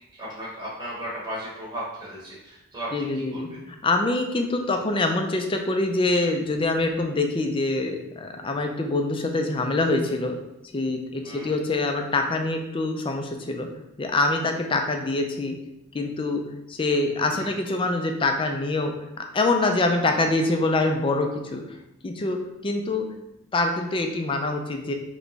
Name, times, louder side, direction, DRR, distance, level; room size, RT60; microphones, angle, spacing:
voice 1, 0.2-3.4 11.2-11.5 17.3-17.6 20.0-20.2, equal, 15° right, -7 dB, 1.0 m, -36 dB
voice 2, 2.9-10.4 10.7-13.7 14.0-15.6 15.9-21.6 22.0-23.1 23.5-24.9, left 2 dB, 25° left, 4 dB, 0.4 m, -25 dB
3.4 x 3.0 x 3.9 m, 0.90 s
head